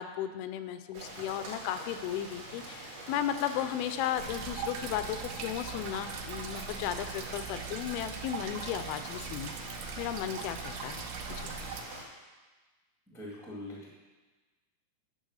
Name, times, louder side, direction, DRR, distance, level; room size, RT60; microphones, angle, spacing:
voice 1, 0.0-9.5 10.0-11.0 11.3-11.6, left 10 dB, 85° left, 10 dB, 2.5 m, -35 dB
Rain, 0.9-12.0, right 1 dB, 50° right, 2.6 m, -45 dB
sound 1, 4.2-11.8, right 6 dB, 80° right, 2.5 m, -41 dB
voice 2, 13.1-13.9, left 1 dB, ahead, -4 dB, 0.6 m, -42 dB
9.2 x 5.5 x 6.4 m, 1.3 s
omnidirectional pair, 4.3 m